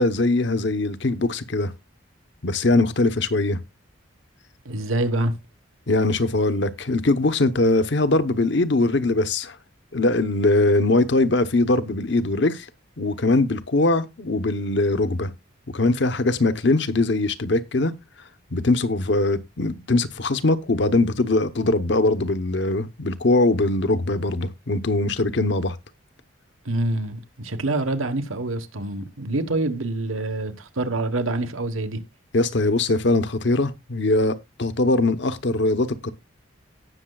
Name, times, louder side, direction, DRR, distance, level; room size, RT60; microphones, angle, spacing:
voice 1, 0.0-1.7 2.4-3.6 5.9-9.6 9.9-12.7 13.0-15.3 15.7-17.9 18.5-25.8 32.3-36.1, left 2 dB, 60° left, 0.9 m, -21 dB
voice 2, 4.6-5.3 26.6-32.0, right 2 dB, 90° right, 1.3 m, -26 dB
18.0 x 6.6 x 2.3 m
head